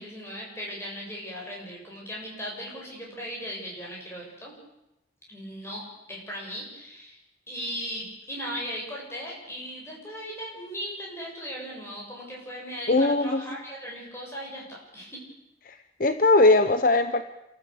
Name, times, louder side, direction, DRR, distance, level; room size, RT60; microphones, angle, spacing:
voice 1, 0.0-4.5 5.3-7.2 7.5-15.2, equal, 15° left, -2 dB, 7.4 m, -37 dB
voice 2, 12.9-13.4 15.6-17.2, left 2 dB, 45° left, 10 dB, 0.8 m, -20 dB
28.5 x 14.0 x 8.7 m, 0.92 s
head